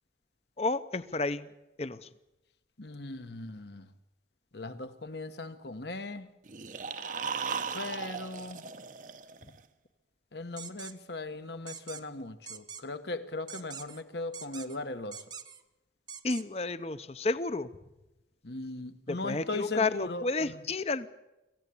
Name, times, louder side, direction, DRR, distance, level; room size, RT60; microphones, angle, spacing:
voice 1, 0.6-1.5 1.8-2.1 9.4-9.5 16.2-17.7 19.1-21.1, left 3 dB, 35° left, 14 dB, 0.8 m, -31 dB
voice 2, 2.8-3.9 4.5-6.3 7.7-8.6 10.3-15.2 18.4-20.6, left 2 dB, 70° left, 10 dB, 1.3 m, -38 dB
sound 1, 6.5-9.6, right 5 dB, 45° right, 0.8 m, -37 dB
sound 2, 10.6-10.9 11.7-12.0 12.5-12.8 13.5-14.0 14.3-14.8 15.1-15.6 16.1-16.4, right 7 dB, 25° right, 1.0 m, -44 dB
25.0 x 15.5 x 8.6 m, 1.0 s
head